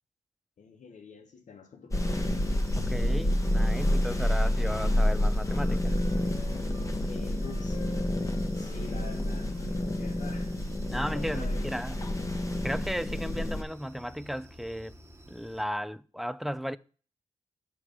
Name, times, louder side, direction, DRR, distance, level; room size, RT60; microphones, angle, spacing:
voice 1, 0.6-2.4 7.0-8.1 8.5-10.6 11.1-11.7, left 5 dB, 70° left, 1.2 m, -47 dB
sound 1, 1.9-13.6, left 1 dB, 25° left, 0.9 m, -28 dB
sound 2, 1.9-15.6, right 1 dB, 20° right, 1.2 m, -52 dB
voice 2, 2.9-6.0 10.9-12.0 12.6-15.0 15.3-16.8, equal, ahead, 0.3 m, -35 dB
Wind instrument woodwind instrument, 3.7-6.9 7.3-10.8, left 2 dB, 50° left, 2.3 m, -51 dB
5.8 x 4.7 x 5.0 m
cardioid pair, 50°, 13 cm